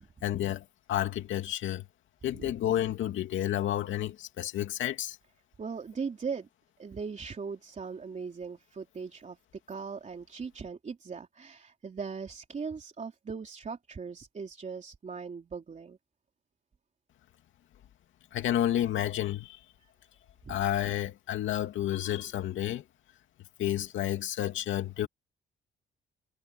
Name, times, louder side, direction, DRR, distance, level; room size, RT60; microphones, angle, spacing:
voice 1, 0.2-1.8 2.2-5.2 18.3-19.6 20.5-22.8 23.6-25.1, left 12 dB, 80° left, 2.5 m, -30 dB
voice 2, 5.6-6.5 6.8-9.4 9.7-16.0 20.5-20.6, right 5 dB, 35° right, 3.5 m, -39 dB
cardioid pair, 90°, 20 cm